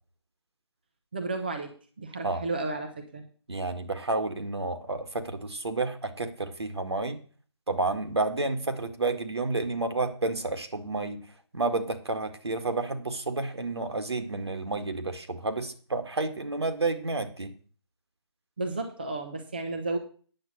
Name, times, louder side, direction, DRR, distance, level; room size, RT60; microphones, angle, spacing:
voice 1, 1.1-1.7 2.0-3.2 18.6-20.0, right 2 dB, 20° right, 4 dB, 0.9 m, -32 dB
voice 2, 3.5-7.2 7.7-11.2 11.5-17.5, right 3 dB, 65° right, 7 dB, 1.8 m, -30 dB
9.5 x 7.7 x 6.2 m, 0.42 s
figure-of-eight pair, 175°, 15 cm